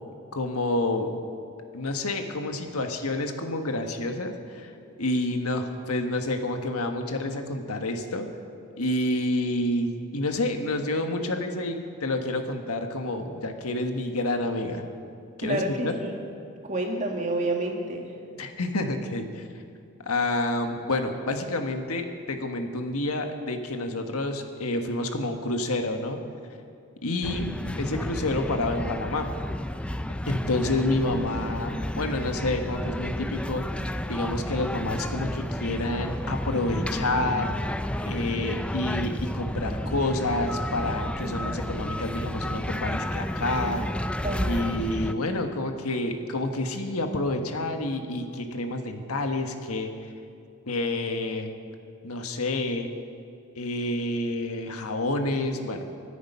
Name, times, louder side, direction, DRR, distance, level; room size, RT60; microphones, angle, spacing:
voice 1, 0.3-1.1 1.7-4.7 5.0-8.3 8.8-14.8 15.4-15.9 18.4-19.4 20.0-26.2 27.0-29.3 30.3-33.7 34.1-37.6 38.0-43.9 44.4-49.9 50.7-51.5 52.0-52.9 53.6-55.9, left 2 dB, 90° left, 5 dB, 1.5 m, -29 dB
voice 2, 15.4-16.1 16.6-18.1 44.2-44.7, right 2 dB, 35° right, 2 dB, 1.9 m, -29 dB
sound 1, 27.2-45.1, left 1 dB, 5° left, 0.3 m, -31 dB
25.0 x 10.0 x 5.6 m, 2.4 s
head